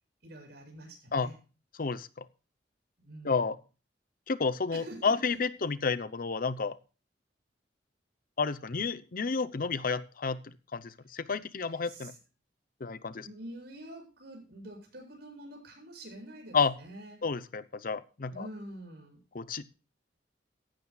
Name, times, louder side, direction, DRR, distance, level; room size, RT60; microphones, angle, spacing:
voice 1, 0.2-1.4 3.0-3.5 4.7-5.4 11.3-12.2 13.1-17.2 18.3-19.2, right 1 dB, 65° right, 2 dB, 7.6 m, -46 dB
voice 2, 1.8-2.3 3.2-3.6 4.3-6.8 8.4-12.1 12.8-13.3 16.5-16.7 17.2-18.5 19.3-19.6, left 5 dB, 50° left, 15 dB, 0.7 m, -31 dB
15.5 x 15.0 x 2.4 m, 0.33 s
head